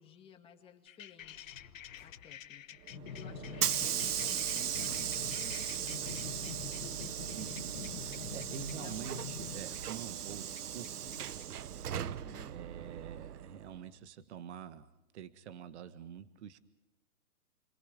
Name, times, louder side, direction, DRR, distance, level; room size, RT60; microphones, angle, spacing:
voice 1, 0.0-1.5 2.0-6.6 8.6-9.1 12.0-12.6, left 7 dB, 10° left, 3 dB, 2.2 m, -56 dB
sound 1, 0.9-11.4, left 10 dB, 60° left, 1.2 m, -47 dB
sound 2, 1.2-2.9, left 5 dB, 90° left, 2.4 m, -60 dB
Hiss / Sliding door, 2.9-13.8, right 10 dB, 90° right, 0.9 m, -37 dB
voice 2, 7.3-11.4 12.5-14.9 15.1-16.6, right 8 dB, 50° right, 12 dB, 1.6 m, -47 dB
29.5 x 22.5 x 5.1 m, 0.94 s
hypercardioid pair, 155°, 45 cm